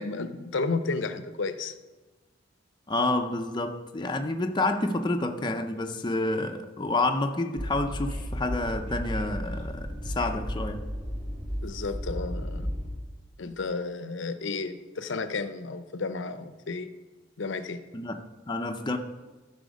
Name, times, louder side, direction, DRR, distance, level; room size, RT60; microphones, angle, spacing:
voice 1, 0.0-1.7 11.6-12.7 13.4-16.9 17.4-17.8, left 3 dB, 65° left, 0.6 m, -32 dB
voice 2, 2.9-10.8 17.9-19.0, left 2 dB, 20° left, 0.5 m, -29 dB
Train, 7.6-12.9, equal, 30° right, 1.8 m, -34 dB
13.0 x 5.7 x 5.2 m
head